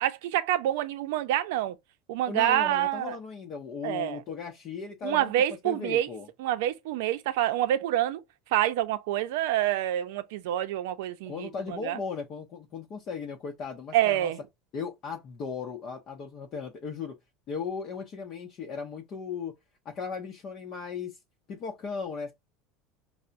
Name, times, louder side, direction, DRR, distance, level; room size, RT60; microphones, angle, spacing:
voice 1, 0.0-1.8 2.1-3.2 3.8-4.2 5.0-6.1 6.4-8.2 8.5-12.0 13.9-14.4, right 13 dB, 80° right, 0.5 m, -27 dB
voice 2, 2.3-5.3 5.6-6.3 11.3-14.3 14.7-17.2 17.5-19.5 19.8-21.2 21.5-22.3, left 5 dB, 40° left, 0.6 m, -37 dB
5.5 x 2.1 x 2.5 m
supercardioid pair, 145°, 0 cm